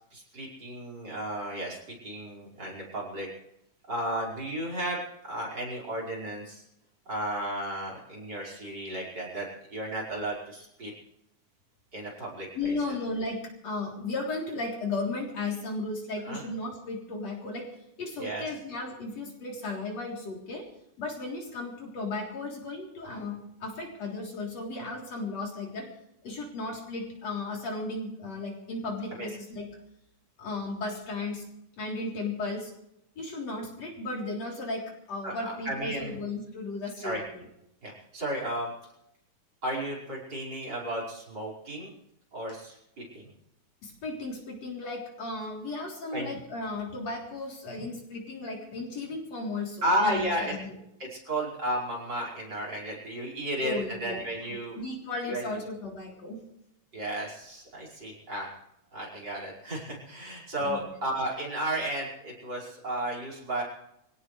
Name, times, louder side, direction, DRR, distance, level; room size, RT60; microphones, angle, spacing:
voice 1, 0.1-3.3 3.9-5.0 5.3-6.6 7.1-10.9 11.9-12.7 16.3-16.4 18.2-18.4 29.1-29.3 35.2-35.3 35.7-36.2 37.0-37.2 37.8-38.7 39.6-41.9 42.3-43.3 46.1-46.3 49.8-50.6 51.0-54.8 55.3-55.4 56.9-58.5 58.9-63.6, right 1 dB, 35° right, -1 dB, 5.8 m, -33 dB
voice 2, 12.5-17.7 18.0-20.7 21.0-25.9 26.2-29.7 30.4-31.4 31.8-32.7 33.2-37.5 43.8-50.8 53.6-54.3 54.8-56.4 60.6-60.8, left 2 dB, 60° left, -1 dB, 4.7 m, -35 dB
24.0 x 17.5 x 3.3 m, 0.82 s
omnidirectional pair, 3.4 m